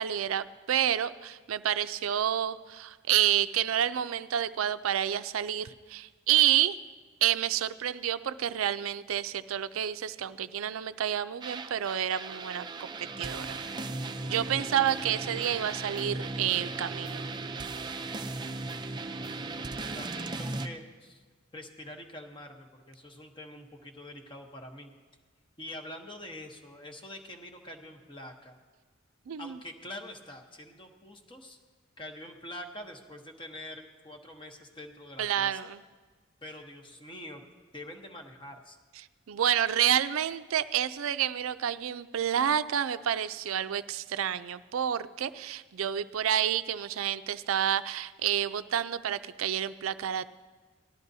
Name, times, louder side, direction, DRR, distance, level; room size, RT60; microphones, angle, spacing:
voice 1, 0.0-6.8 7.2-12.7 13.2-13.6 14.2-17.3 29.3-29.6 35.2-35.8 39.3-50.3, right 10 dB, 80° right, 14 dB, 0.4 m, -29 dB
sound 1, 11.4-20.7, right 3 dB, 20° right, 0.5 m, -37 dB
voice 2, 19.7-21.2 21.5-24.9 25.6-28.6 29.4-31.6 32.0-35.6 36.4-37.5 37.7-38.8, left 1 dB, 25° left, 4 dB, 0.9 m, -45 dB
18.0 x 12.5 x 2.7 m, 1.4 s
head